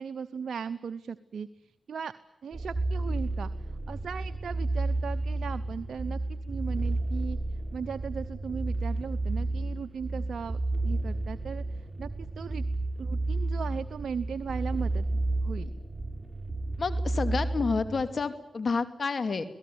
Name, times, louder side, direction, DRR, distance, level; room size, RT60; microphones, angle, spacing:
voice 1, 0.0-2.2 2.4-3.5 3.9-7.4 7.7-12.6 13.0-15.0 15.4-15.7, right 6 dB, 70° right, 10 dB, 0.8 m, -37 dB
sound 1, 2.5-18.0, right 2 dB, 25° right, 5.5 m, -31 dB
voice 2, 16.8-19.4, left 4 dB, 55° left, 10 dB, 2.5 m, -29 dB
25.5 x 18.0 x 9.4 m, 0.94 s
supercardioid pair, 45°, 0 cm